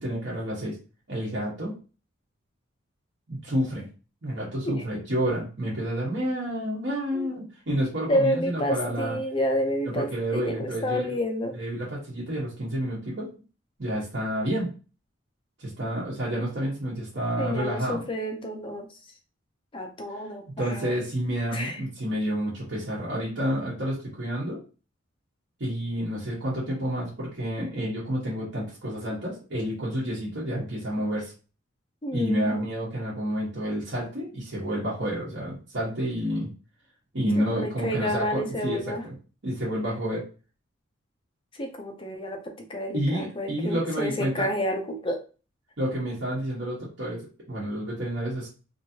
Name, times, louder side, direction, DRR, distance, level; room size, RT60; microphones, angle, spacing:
voice 1, 0.0-0.8 1.1-1.8 3.3-3.8 4.2-9.2 9.8-11.2 11.5-13.3 13.8-14.7 15.6-18.0 20.6-24.6 25.6-31.3 32.1-36.5 37.1-39.1 39.4-40.2 42.9-44.5 45.8-47.2 47.5-48.5, equal, 60° right, -7 dB, 1.1 m, -29 dB
voice 2, 8.1-11.6 17.4-18.9 19.7-20.9 21.5-21.8 32.0-32.6 37.4-39.0 41.5-45.2, equal, 25° left, 3 dB, 0.5 m, -29 dB
3.0 x 2.6 x 2.8 m, 0.34 s
head